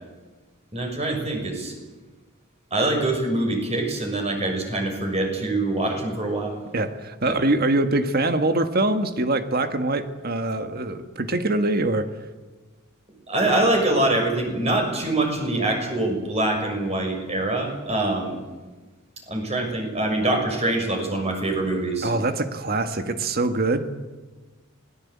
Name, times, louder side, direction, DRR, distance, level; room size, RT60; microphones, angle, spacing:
voice 1, 0.7-1.7 2.7-6.6 7.2-7.4 13.3-18.4 19.3-22.1, right 2 dB, 30° right, 3 dB, 6.5 m, -24 dB
voice 2, 6.7-12.1 22.0-23.9, right 2 dB, 45° right, 8 dB, 1.6 m, -23 dB
26.5 x 19.5 x 8.6 m, 1.2 s
head